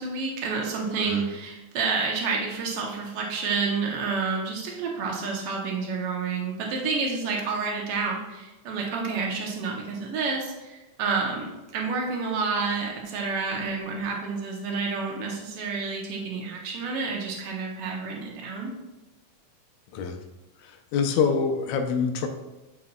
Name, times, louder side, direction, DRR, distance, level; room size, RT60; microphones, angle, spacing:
voice 1, 0.0-18.7, right 4 dB, 85° right, -1 dB, 1.3 m, -29 dB
voice 2, 20.6-22.3, left 6 dB, 80° left, 5 dB, 2.2 m, -25 dB
9.5 x 5.4 x 2.3 m, 1.1 s
omnidirectional pair, 3.8 m